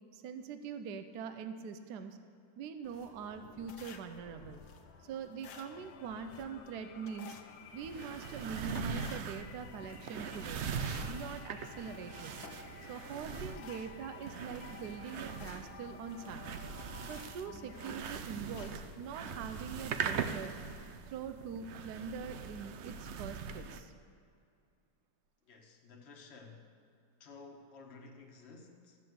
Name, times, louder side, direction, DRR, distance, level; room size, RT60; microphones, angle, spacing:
voice 1, 0.1-2.2 2.6-4.6 5.0-7.4 7.7-10.6 11.1-12.3 12.9-16.5 17.1-20.5 21.1-23.9, right 6 dB, 65° right, 8 dB, 1.2 m, -43 dB
sound 1, 2.8-20.0, left 4 dB, 80° left, 1.7 m, -55 dB
sound 2, 5.5-18.2, left 8 dB, 65° left, 1.2 m, -54 dB
sound 3, 7.8-23.8, right 6 dB, 85° right, 0.6 m, -41 dB
voice 2, 25.4-26.7 27.2-29.0, left 4 dB, 40° left, 1 dB, 1.5 m, -53 dB
13.0 x 7.6 x 7.8 m, 2.4 s
omnidirectional pair, 2.0 m